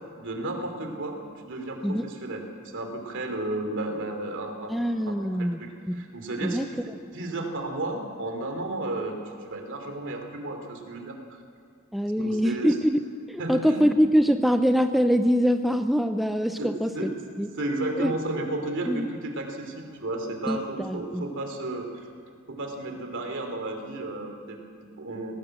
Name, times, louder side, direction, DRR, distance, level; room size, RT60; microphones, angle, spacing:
voice 1, 0.2-2.5 2.7-4.7 5.0-5.1 5.4-9.2 9.4-11.2 12.2-12.7 13.4-13.8 16.6-16.7 16.9-17.1 17.5-22.1 22.5-25.4, right 2 dB, 60° right, 4 dB, 2.9 m, -33 dB
voice 2, 4.7-5.6 5.9-6.0 6.4-6.7 11.9-13.0 13.3-17.1 17.4-17.5 18.0-18.1 18.9-19.1 20.5-21.2, equal, ahead, 7 dB, 0.5 m, -24 dB
18.5 x 18.0 x 7.8 m, 2.2 s
head